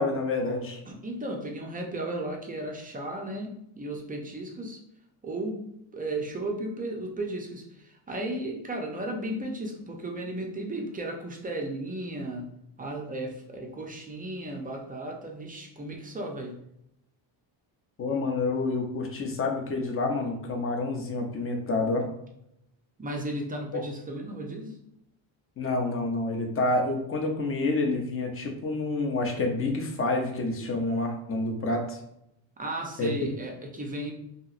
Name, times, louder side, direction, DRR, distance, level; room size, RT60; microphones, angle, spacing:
voice 1, 0.0-0.8 18.0-22.1 23.7-23.8 25.6-32.0 33.0-33.1, left 2 dB, 30° left, 2 dB, 0.5 m, -28 dB
voice 2, 0.9-4.8 5.2-12.5 12.8-16.6 23.0-24.8 30.7-30.8 32.6-34.1, right 1 dB, 20° right, 1 dB, 0.4 m, -35 dB
2.9 x 2.8 x 2.4 m, 0.79 s
cardioid pair, 125°, 49 cm